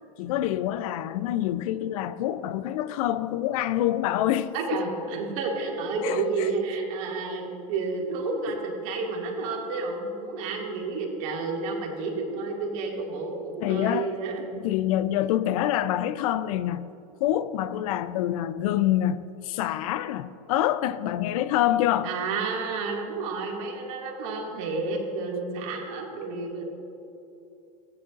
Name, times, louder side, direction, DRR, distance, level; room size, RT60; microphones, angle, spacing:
voice 1, 0.2-4.8 6.0-6.5 8.5-8.6 13.6-14.1 14.4-16.9 17.2-22.1, left 12 dB, 70° left, 0.5 m, -26 dB
voice 2, 4.5-14.4 22.0-26.7, right 3 dB, 65° right, 2.2 m, -30 dB
15.0 x 9.7 x 2.5 m
hypercardioid pair, 100°, 19 cm